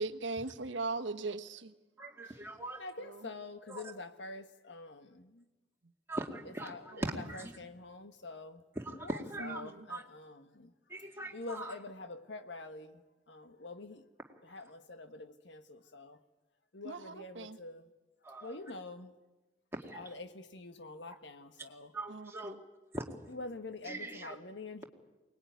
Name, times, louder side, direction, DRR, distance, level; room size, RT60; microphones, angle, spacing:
voice 1, 0.0-1.7 3.0-3.3 6.9-7.0 9.4-9.9 16.8-17.6 22.1-22.6, right 3 dB, 80° right, 8 dB, 1.2 m, -39 dB
voice 2, 2.0-2.8 3.7-3.8 6.1-7.5 8.8-9.6 9.9-10.0 10.9-11.7 18.2-18.5 19.7-20.0 21.9-22.5 22.9-23.1 23.9-24.4, right 1 dB, 15° right, 1 dB, 2.2 m, -41 dB
voice 3, 2.8-5.5 6.4-10.7 11.3-14.1 14.4-16.2 16.7-17.9 18.4-19.1 19.9-21.9 23.3-24.8, left 2 dB, 70° left, 9 dB, 1.4 m, -46 dB
23.5 x 19.5 x 9.4 m, 1.1 s
head